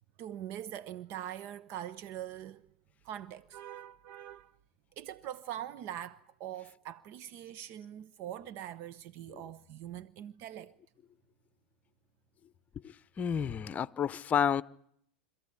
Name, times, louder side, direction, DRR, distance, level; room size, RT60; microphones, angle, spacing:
voice 1, 0.2-2.6 3.0-4.5 5.0-10.7, right 11 dB, 50° right, 0.9 m, -43 dB
voice 2, 12.8-14.6, left 8 dB, 25° left, 0.9 m, -31 dB
25.5 x 15.5 x 9.9 m
hypercardioid pair, 100°, 5 cm